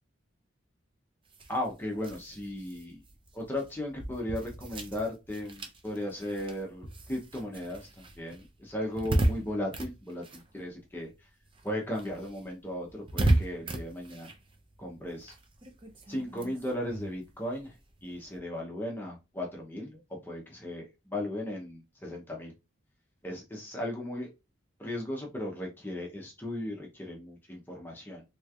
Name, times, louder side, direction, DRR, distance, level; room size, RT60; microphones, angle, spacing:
sound 1, 1.3-11.2 11.4-18.4, right 1 dB, 25° right, 0.5 m, -35 dB
voice 1, 1.5-3.0 3.3-11.1 11.6-14.3 14.8-15.3 16.1-17.8 18.0-22.5 23.2-24.3 24.8-28.2, left 1 dB, 10° left, -1 dB, 0.7 m, -36 dB
3.2 x 3.1 x 2.4 m, 0.25 s
head